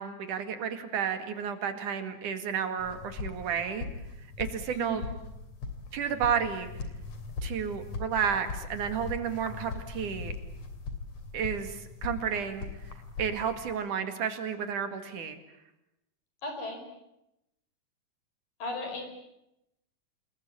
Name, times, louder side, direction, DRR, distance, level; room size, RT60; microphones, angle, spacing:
voice 1, 0.0-3.9 4.4-5.0 5.9-6.7 7.4-10.3 11.3-12.7 13.2-15.4, right 7 dB, 70° right, 8 dB, 3.6 m, -31 dB
sound 1, 2.8-13.7, left 4 dB, 50° left, 4.1 m, -40 dB
voice 2, 4.7-5.1 16.4-16.8 18.6-19.0, left 1 dB, 85° left, 5 dB, 6.9 m, -36 dB
28.0 x 21.5 x 8.6 m, 0.86 s
omnidirectional pair, 3.8 m